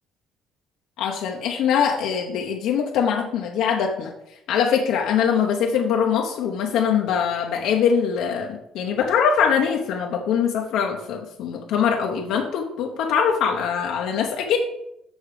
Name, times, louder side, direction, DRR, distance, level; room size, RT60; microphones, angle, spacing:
voice 1, 1.0-4.1 4.5-14.6, left 7 dB, 75° left, 1 dB, 0.9 m, -22 dB
6.5 x 6.3 x 5.0 m, 0.83 s
cardioid pair, 145°, 0 cm